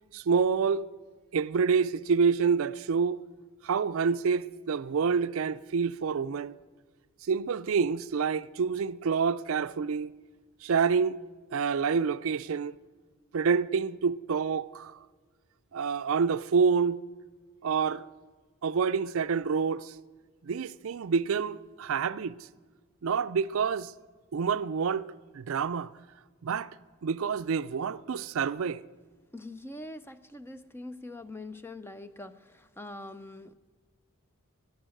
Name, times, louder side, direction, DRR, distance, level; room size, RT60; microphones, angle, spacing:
voice 1, 0.1-0.9 1.3-3.2 3.6-6.5 7.3-10.1 10.6-11.2 11.5-12.7 13.3-15.0 15.7-17.0 17.6-18.0 18.6-19.9 20.4-22.3 23.0-23.9 24.3-25.1 25.3-25.9 26.4-26.7 27.0-28.8, right 5 dB, 65° right, 0.4 m, -27 dB
voice 2, 29.3-33.5, left 2 dB, 10° left, 0.5 m, -43 dB
14.5 x 11.5 x 7.7 m
head